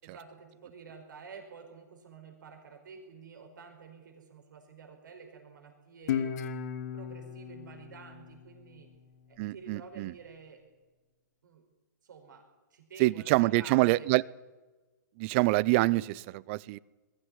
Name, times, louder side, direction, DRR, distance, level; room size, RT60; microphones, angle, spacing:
voice 1, 0.0-6.3 6.9-8.9 9.3-10.6 11.4-11.6 12.0-12.4 12.7-14.1, right 5 dB, 75° right, 4 dB, 5.0 m, -50 dB
Guitar, 6.1-9.3, left 8 dB, 55° left, 2.1 m, -36 dB
voice 2, 9.4-10.1 13.0-14.2 15.2-16.8, right 20 dB, 40° right, 23 dB, 0.6 m, -26 dB
21.5 x 15.5 x 10.0 m, 1.2 s
hypercardioid pair, 135°, 10 cm